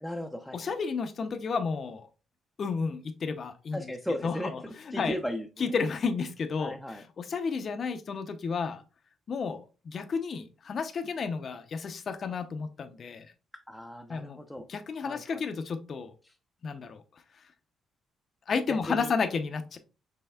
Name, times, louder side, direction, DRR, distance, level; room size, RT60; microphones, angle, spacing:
voice 1, 0.0-0.8 3.7-5.7 6.6-7.0 13.7-14.7 15.1-15.4 16.2-16.3 18.7-19.1, left 1 dB, ahead, 3 dB, 0.5 m, -36 dB
voice 2, 0.5-2.1 2.6-3.9 4.2-4.6 5.0-5.2 5.6-8.8 9.3-13.3 14.1-14.4 14.7-16.1 16.6-17.0 17.3-17.4 18.5-19.8, left 5 dB, 50° left, 8 dB, 0.5 m, -32 dB
5.5 x 3.4 x 2.3 m, 0.32 s
cardioid pair, 90°, 0 cm